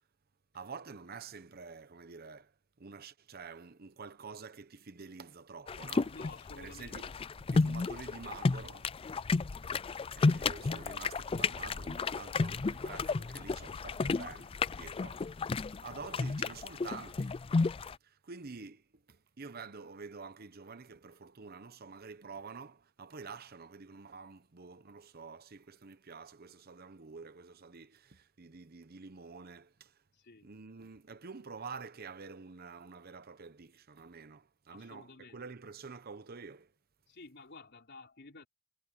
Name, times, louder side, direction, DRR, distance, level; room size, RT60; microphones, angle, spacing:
voice 1, 0.5-2.5 2.8-6.2 6.6-7.1 7.5-8.9 10.1-15.5 15.8-17.4 18.0-30.0 30.4-36.7, right 4 dB, 45° right, 0.9 m, -48 dB
sound 1, 5.7-17.9, left 4 dB, 25° left, 0.3 m, -32 dB
voice 2, 6.1-7.0 15.0-15.1 15.7-15.8 30.1-30.5 34.7-35.4 37.1-38.5, left 3 dB, 55° left, 3.8 m, -52 dB
head